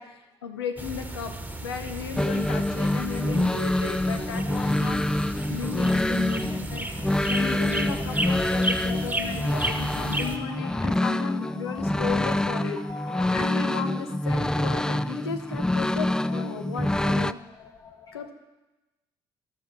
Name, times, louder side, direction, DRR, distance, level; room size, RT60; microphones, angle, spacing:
voice 1, 0.0-5.0 5.5-6.9 7.3-12.8 13.3-17.4 18.1-18.3, left 6 dB, 85° left, 6 dB, 0.8 m, -35 dB
sound 1, 0.8-10.4, right 1 dB, 10° right, 1.2 m, -33 dB
sound 2, 2.1-17.3, left 1 dB, 5° left, 0.3 m, -26 dB
voice 2, 2.8-3.3 6.7-13.5 16.2-16.6 17.5-18.3, left 5 dB, 25° left, 5 dB, 0.8 m, -43 dB
12.5 x 6.8 x 5.9 m, 1.1 s
figure-of-eight pair, 45°, 13 cm